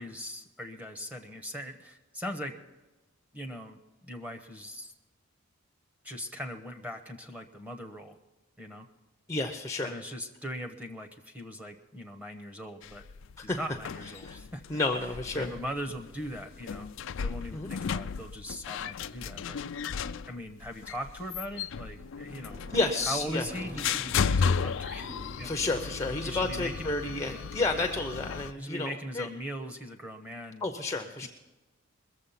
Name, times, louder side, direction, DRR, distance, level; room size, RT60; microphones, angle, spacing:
voice 1, 0.0-2.6 3.3-4.9 6.0-8.2 8.6-8.9 9.8-13.0 13.4-14.6 15.3-16.9 17.2-19.6 20.3-22.6 23.0-25.1 25.4-25.5 26.2-26.9 27.3-27.4 28.6-30.7 31.2-31.3, equal, 5° right, 6 dB, 1.0 m, -40 dB
voice 2, 9.3-9.9 13.4-13.6 14.2-14.4 14.7-15.5 17.5-17.7 22.7-23.5 25.4-29.3 30.6-31.3, left 2 dB, 15° left, 4 dB, 0.7 m, -31 dB
sound 1, 12.8-28.5, left 6 dB, 55° left, 0.4 m, -35 dB
Thunder, 22.5-27.1, right 1 dB, 45° right, 4.2 m, -45 dB
21.5 x 7.4 x 5.8 m, 1.1 s
head